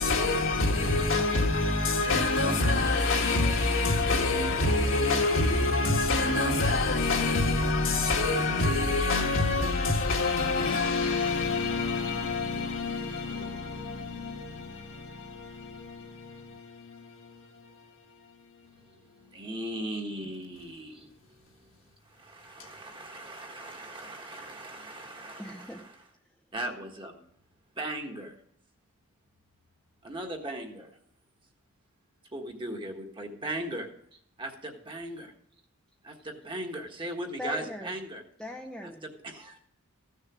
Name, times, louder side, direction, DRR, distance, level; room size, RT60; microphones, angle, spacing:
voice 1, 0.0-18.7 19.2-19.3, left 3 dB, 60° left, 1.8 m, -27 dB
voice 2, 19.2-21.6 22.0-25.9 26.5-27.2 27.7-28.4 30.0-30.9 32.3-33.9 34.4-35.3 36.0-38.2 38.8-39.6, right 1 dB, 20° right, 1.5 m, -38 dB
voice 3, 25.4-25.8 37.4-37.9 38.4-39.0, left 2 dB, 5° left, 0.7 m, -39 dB
15.0 x 6.6 x 6.1 m
head